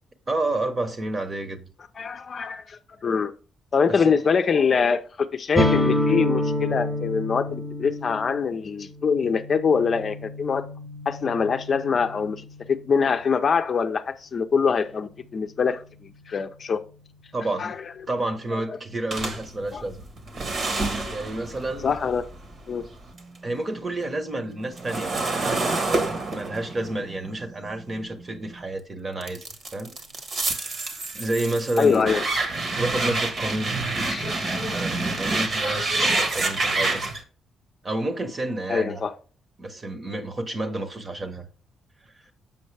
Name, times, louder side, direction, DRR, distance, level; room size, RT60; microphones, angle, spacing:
voice 1, 0.3-1.7 3.9-4.1 17.3-17.7 18.1-20.1 21.1-21.9 23.4-29.4 29.7-29.9 31.1-32.1 32.8-33.8 34.7-37.0 37.8-39.1 39.6-41.5, right 2 dB, 30° right, 1.1 m, -30 dB
voice 2, 2.0-3.3 3.7-10.7 11.1-15.8 16.3-16.8 17.6-17.8 18.7-18.8 19.7-19.8 21.0-21.2 21.8-22.2 22.7-22.8 31.8-32.2 34.1-34.8 35.6-35.8 38.7-39.1, left 6 dB, 45° left, 0.6 m, -24 dB
sound 1, 5.5-13.2, left 1 dB, 5° right, 1.0 m, -28 dB
sound 2, 19.1-23.4 23.7-28.6 29.2-37.2, right 3 dB, 50° right, 1.3 m, -28 dB
7.1 x 5.4 x 3.3 m
cardioid pair, 90°, 0 cm